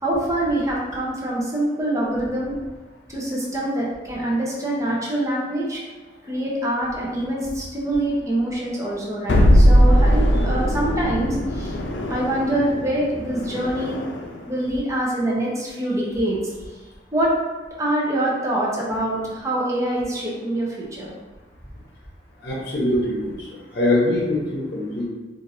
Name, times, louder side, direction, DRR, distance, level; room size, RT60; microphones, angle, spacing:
voice 1, 0.0-2.5 3.1-5.8 6.2-13.9 14.5-16.4 17.1-17.4 17.8-21.1, right 1 dB, 20° right, -4 dB, 0.7 m, -25 dB
sound 1, 9.3-14.4, equal, 80° left, 0.5 m, -19 dB
voice 2, 22.4-23.3 23.7-25.1, left 1 dB, 55° left, -5 dB, 0.8 m, -22 dB
4.4 x 2.6 x 2.6 m, 1.2 s
head